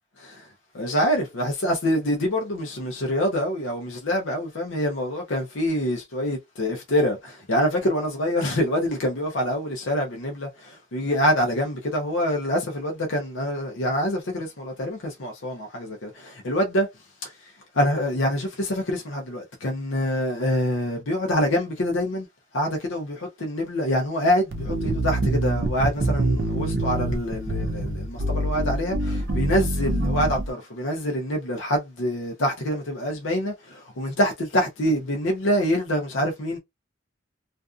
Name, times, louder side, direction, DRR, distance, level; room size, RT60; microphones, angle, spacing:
voice 1, 0.2-0.5 0.7-16.9 17.2-22.3 22.5-36.6, equal, 80° left, 0.7 m, -26 dB
sound 1, 24.5-30.5, right 1 dB, 55° right, 0.5 m, -25 dB
2.5 x 2.3 x 2.4 m
head